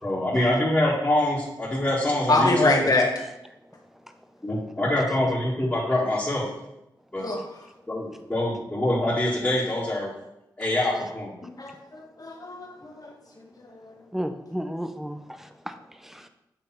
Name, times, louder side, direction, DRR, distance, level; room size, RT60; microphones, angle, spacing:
voice 1, 0.0-2.8 4.4-6.4 7.1-7.3 7.9-10.1 10.6-11.3, left 1 dB, 20° left, -8 dB, 2.0 m, -25 dB
voice 2, 2.3-3.1 7.2-7.4 11.4-13.1, left 2 dB, 45° left, 0 dB, 1.5 m, -24 dB
voice 3, 14.1-16.3, equal, 5° right, 8 dB, 0.7 m, -34 dB
7.8 x 3.2 x 4.4 m, 0.88 s
cardioid pair, 45°, 8 cm